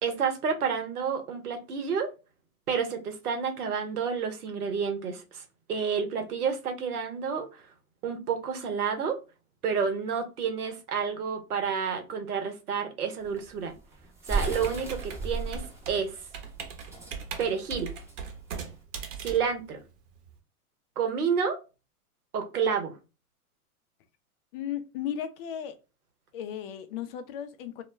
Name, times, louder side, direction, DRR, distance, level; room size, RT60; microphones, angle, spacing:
voice 1, 0.0-2.1 2.7-5.4 5.7-7.6 8.0-9.2 9.6-13.7 14.3-16.2 17.4-17.9 19.2-19.8 21.0-21.6 22.3-22.9, right 6 dB, 80° right, 0.9 m, -30 dB
sound 1, 13.2-18.8, right 3 dB, 5° right, 0.7 m, -35 dB
Computer keyboard, 14.4-20.3, right 6 dB, 50° right, 0.9 m, -40 dB
voice 2, 24.5-25.8 26.3-27.8, left 9 dB, 40° left, 0.5 m, -35 dB
2.2 x 2.1 x 3.1 m
hypercardioid pair, 110°, 44 cm